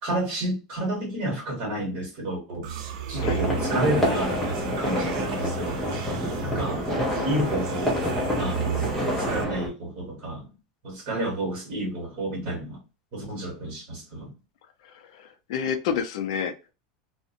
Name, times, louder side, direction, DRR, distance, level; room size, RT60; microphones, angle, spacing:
voice 1, 0.0-2.7 3.1-5.8 6.4-6.9 7.2-7.9 8.4-10.4 10.8-12.8 13.1-14.3, right 1 dB, 35° right, 1.3 m, -30 dB
sound 1, 2.6-9.4, right 6 dB, 65° right, 0.5 m, -34 dB
sound 2, 3.2-9.7, equal, 5° left, 0.6 m, -27 dB
voice 2, 15.1-16.7, left 7 dB, 60° left, 0.4 m, -29 dB
2.5 x 2.1 x 2.6 m
supercardioid pair, 170°, 4 cm